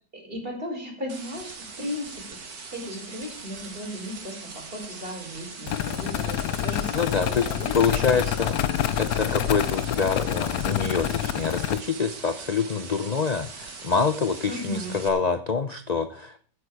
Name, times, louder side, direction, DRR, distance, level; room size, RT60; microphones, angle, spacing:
voice 1, 0.1-8.4 14.5-15.0, equal, 30° right, 1 dB, 4.9 m, -36 dB
sound 1, 1.1-15.1, right 4 dB, 60° right, 2.3 m, -41 dB
sound 2, 5.7-11.8, left 11 dB, 65° left, 1.1 m, -27 dB
voice 2, 6.9-7.5 7.7-8.6 9.0-16.4, left 5 dB, 45° left, 10 dB, 0.5 m, -26 dB
15.0 x 9.6 x 4.8 m, 0.43 s
omnidirectional pair, 1.9 m